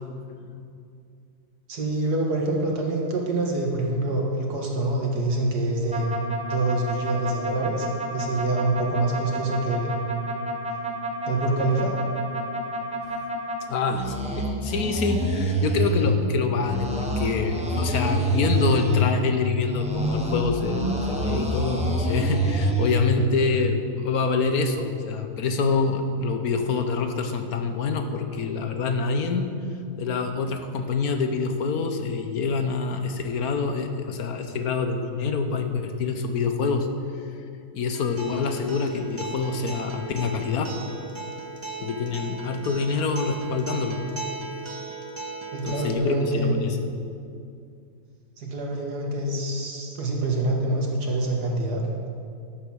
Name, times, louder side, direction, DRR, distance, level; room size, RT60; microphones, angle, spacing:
voice 1, 1.7-6.1 6.5-7.9 8.1-10.0 11.3-11.9 45.5-46.6 48.4-51.8, right 2 dB, 85° right, 0 dB, 2.3 m, -26 dB
sound 1, 5.9-13.6 13.9-16.1 16.6-19.1 19.6-23.0, right 1 dB, 5° right, 1.3 m, -27 dB
voice 2, 13.7-29.5 30.0-36.9 37.7-40.7 41.8-44.1 45.6-46.8, left 4 dB, 70° left, 6 dB, 1.4 m, -26 dB
Acoustic guitar, 37.9-45.9, right 4 dB, 35° right, 0.4 m, -37 dB
12.0 x 8.3 x 6.3 m, 2.4 s
omnidirectional pair, 1.7 m